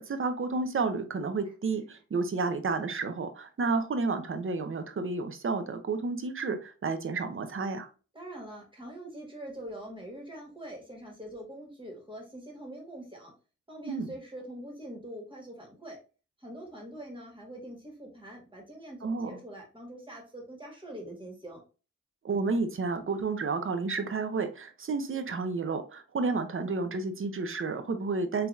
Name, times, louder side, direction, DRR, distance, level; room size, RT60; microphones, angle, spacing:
voice 1, 0.0-7.9 13.8-14.1 19.0-19.3 22.2-28.5, right 4 dB, 40° right, 0.7 m, -31 dB
voice 2, 8.1-13.3 13.7-16.0 16.4-21.6, right 1 dB, 15° right, 1.7 m, -44 dB
3.8 x 2.8 x 2.5 m
cardioid pair, 50°, 31 cm